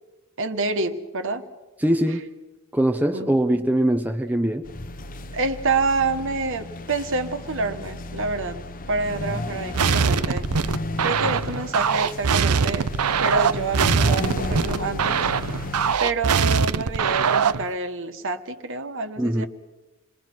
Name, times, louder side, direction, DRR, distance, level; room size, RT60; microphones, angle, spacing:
voice 1, 0.4-1.5 3.1-3.3 5.3-10.5 11.0-12.9 13.2-15.3 16.0-19.5, right 3 dB, 60° right, 8 dB, 1.4 m, -27 dB
voice 2, 1.8-2.3 2.7-4.6 19.2-19.4, right 1 dB, 5° right, 3 dB, 0.8 m, -22 dB
sound 1, 4.6-16.0, left 2 dB, 40° left, 0.8 m, -33 dB
sound 2, 9.7-17.7, right 6 dB, 90° right, 0.7 m, -22 dB
28.0 x 21.0 x 6.1 m, 1.1 s
head